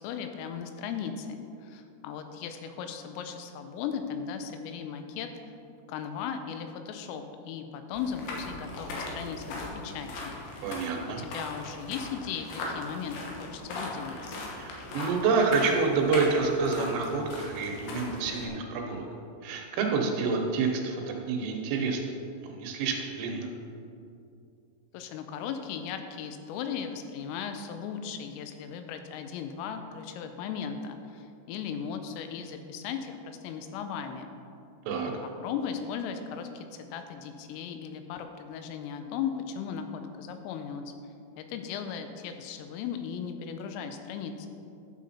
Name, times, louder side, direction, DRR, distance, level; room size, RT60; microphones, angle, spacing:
voice 1, 0.0-5.3 5.9-10.3 11.2-14.2 24.9-34.3 35.4-40.9 41.4-44.5, left 7 dB, 90° left, 7 dB, 3.4 m, -37 dB
sound 1, 7.9-18.5, left 2 dB, 70° left, 3.3 m, -39 dB
voice 2, 10.6-11.2 14.6-19.1 19.4-22.0 22.4-23.5 34.9-35.1, right 4 dB, 80° right, 2 dB, 3.2 m, -28 dB
11.5 x 6.7 x 4.2 m, 2.5 s
omnidirectional pair, 5.7 m